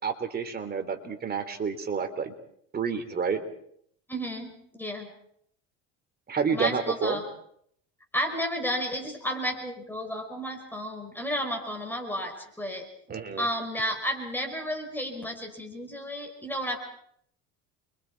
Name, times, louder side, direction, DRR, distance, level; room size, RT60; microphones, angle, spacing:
voice 1, 0.0-2.3 2.7-3.4 6.3-7.2 13.1-13.5, right 6 dB, 30° right, 7 dB, 3.5 m, -29 dB
voice 2, 4.1-5.1 6.5-7.2 8.1-12.9 13.4-16.8, equal, 5° left, 3 dB, 5.3 m, -32 dB
29.5 x 24.5 x 4.7 m, 0.68 s
cardioid pair, 125°, 33 cm